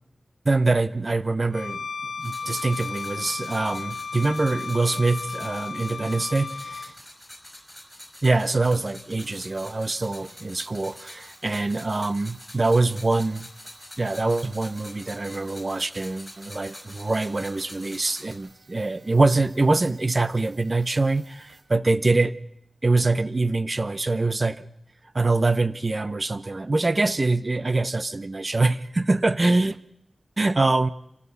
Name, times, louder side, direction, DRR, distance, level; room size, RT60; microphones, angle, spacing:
voice 1, 0.5-1.9 2.2-6.7 8.2-13.5 14.0-22.3 22.8-24.7 25.1-29.8 30.4-30.9, right 3 dB, 35° right, 0.7 m, -24 dB
Bowed string instrument, 1.5-6.9, left 5 dB, 75° left, 0.7 m, -34 dB
sound 1, 2.2-18.4, left 1 dB, 10° left, 5.5 m, -45 dB
sound 2, 9.2-21.6, right 3 dB, 85° right, 3.6 m, -57 dB
27.5 x 15.5 x 6.9 m
wide cardioid pair, 85°, 0 cm